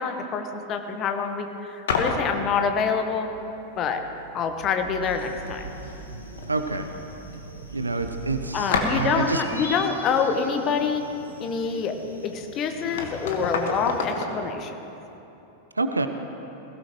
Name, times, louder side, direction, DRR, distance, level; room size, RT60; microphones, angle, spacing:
voice 1, 0.0-3.3 3.8-4.0 4.3-5.7 8.5-11.1 11.4-14.7, left 6 dB, 35° left, 6 dB, 1.2 m, -26 dB
sound 1, 1.9-2.3 4.4-4.5 4.8-5.4 5.7-6.5 6.7-6.8 7.3-7.4 8.7-9.2 12.3-12.4 12.7-14.4, left 4 dB, 60° left, 1.5 m, -29 dB
sound 2, 2.9-8.6, right 4 dB, 65° right, 1.0 m, -42 dB
sound 3, 5.0-14.0, left 1 dB, 85° left, 1.6 m, -44 dB
voice 2, 6.5-6.9 7.7-9.4 15.8-16.1, right 3 dB, 80° right, 8 dB, 0.7 m, -27 dB
20.5 x 16.5 x 3.1 m, 3.0 s
figure-of-eight pair, 90°, 0 cm